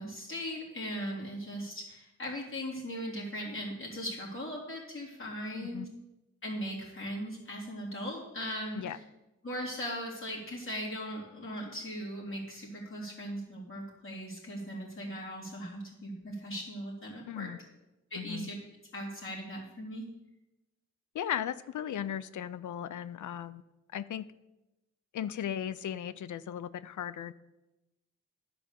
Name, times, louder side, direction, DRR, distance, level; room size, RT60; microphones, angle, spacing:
voice 1, 0.0-5.9 6.4-9.0 9.4-17.5 18.1-18.6 18.9-20.1, equal, 45° left, -4 dB, 3.4 m, -39 dB
voice 2, 5.5-5.9 8.8-9.0 17.3-17.6 18.2-18.5 21.1-23.6 23.9-24.2 25.1-27.3, left 9 dB, 75° left, 15 dB, 0.5 m, -37 dB
11.0 x 5.1 x 6.8 m, 0.98 s
wide cardioid pair, 95°, 30 cm